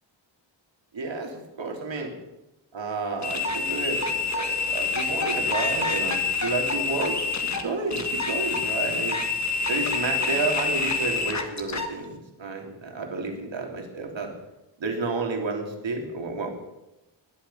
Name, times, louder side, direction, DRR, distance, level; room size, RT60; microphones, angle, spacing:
voice 1, 0.9-2.1 2.7-9.2 9.7-14.3 14.8-16.5, right 3 dB, 70° right, 2 dB, 3.2 m, -31 dB
sound 1, 3.2-11.9, left 4 dB, 35° left, 1.7 m, -27 dB
19.5 x 11.5 x 5.7 m, 0.97 s
wide cardioid pair, 140°, 46 cm